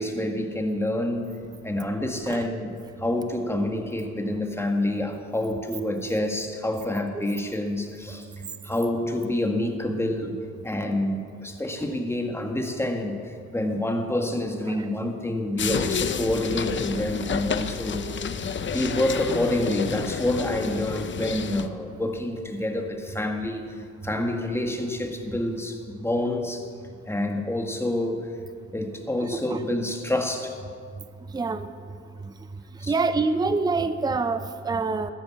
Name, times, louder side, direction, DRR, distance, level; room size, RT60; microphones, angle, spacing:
voice 1, 0.0-1.3 1.6-2.7 3.0-8.3 8.6-10.3 10.6-18.1 18.7-26.7 27.0-28.2 28.7-30.6 32.8-32.9, left 1 dB, 10° left, 4 dB, 1.8 m, -27 dB
sound 1, 15.6-21.7, left 7 dB, 40° left, 0.7 m, -30 dB
voice 2, 31.3-31.7 32.9-35.1, right 3 dB, 15° right, 11 dB, 0.6 m, -25 dB
13.0 x 10.0 x 7.4 m, 2.2 s
cardioid pair, 90°, 30 cm